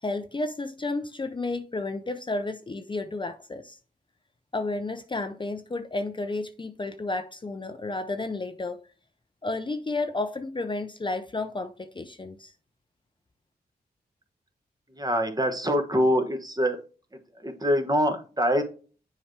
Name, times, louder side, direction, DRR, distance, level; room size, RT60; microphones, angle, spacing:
voice 1, 0.0-3.8 4.5-8.8 9.4-12.5, left 2 dB, 30° left, 0.6 m, -32 dB
voice 2, 14.9-16.8 17.4-18.6, equal, 20° right, 1.3 m, -24 dB
7.0 x 4.8 x 3.3 m
cardioid pair, 55°, 17 cm